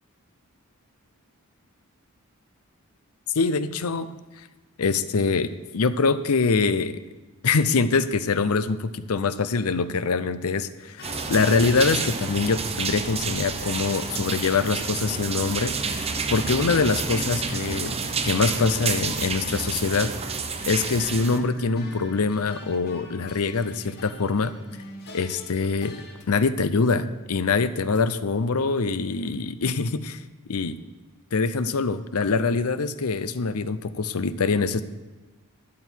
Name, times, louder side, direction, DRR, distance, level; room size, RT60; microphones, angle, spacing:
voice 1, 3.3-4.1 4.8-7.0 7.4-15.7 16.3-17.9 18.2-20.1 20.7-24.5 25.1-26.0 26.3-30.2 30.5-30.8 31.3-34.8, left 4 dB, 85° left, 13 dB, 0.7 m, -24 dB
sound 1, 11.0-26.2, left 2 dB, 50° left, 1.6 m, -43 dB
sound 2, 11.0-21.4, right 5 dB, 30° right, 0.8 m, -29 dB
11.5 x 11.0 x 4.6 m, 1.2 s
head